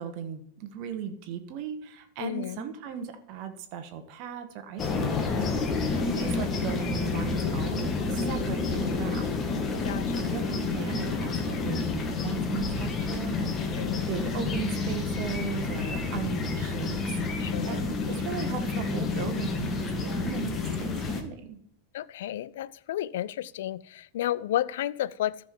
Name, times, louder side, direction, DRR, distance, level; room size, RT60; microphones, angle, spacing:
voice 1, 0.0-5.5 6.1-9.4 10.2-17.0 17.6-21.6, right 7 dB, 45° right, 1.2 m, -37 dB
voice 2, 2.2-2.7 6.0-6.5 9.8-10.5 13.6-14.1 17.4-17.9 21.9-25.5, left 12 dB, 55° left, 0.4 m, -33 dB
sound 1, 4.8-21.2, left 4 dB, 25° left, 1.4 m, -29 dB
13.5 x 6.1 x 4.5 m
figure-of-eight pair, 90°, 0 cm